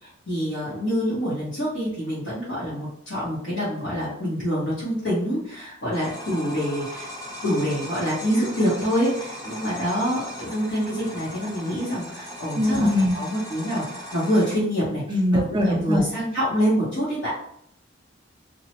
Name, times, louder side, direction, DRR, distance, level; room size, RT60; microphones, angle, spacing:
voice 1, 0.0-7.1 7.4-17.3, equal, 75° left, -11 dB, 1.3 m, -26 dB
sound 1, 5.9-14.6, equal, 20° left, 0.7 m, -38 dB
voice 2, 12.5-13.1 15.1-16.0, left 1 dB, 25° right, 0 dB, 0.5 m, -21 dB
2.8 x 2.3 x 3.0 m, 0.70 s
head